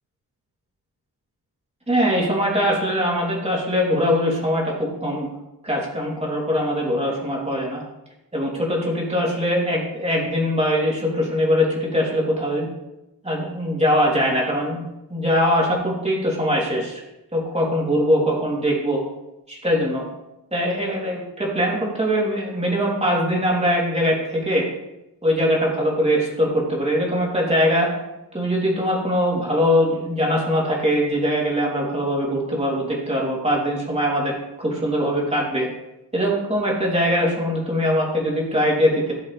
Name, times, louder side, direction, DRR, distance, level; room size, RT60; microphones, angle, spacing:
voice 1, 1.9-5.3 5.6-7.8 8.3-12.7 13.2-14.8 15.1-17.0 17.3-19.0 19.5-20.1 20.5-24.6 25.2-27.9 28.3-35.7 36.1-39.1, equal, 15° right, -4 dB, 3.4 m, -22 dB
17.0 x 7.0 x 3.5 m, 0.94 s
wide cardioid pair, 145°, 41 cm